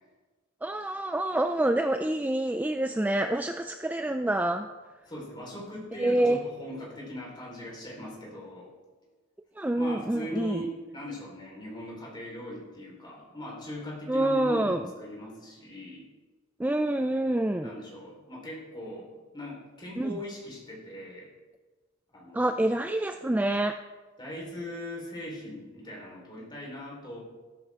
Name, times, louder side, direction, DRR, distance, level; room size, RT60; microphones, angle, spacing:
voice 1, 0.6-4.7 6.0-6.4 9.6-10.6 14.1-14.8 16.6-17.7 20.0-20.2 22.3-23.8, right 1 dB, 10° right, 7 dB, 0.3 m, -27 dB
voice 2, 5.0-8.7 9.7-16.0 17.6-21.3 22.1-22.8 24.2-27.2, left 1 dB, 20° left, -3 dB, 4.3 m, -40 dB
13.0 x 13.0 x 3.7 m, 1.3 s
head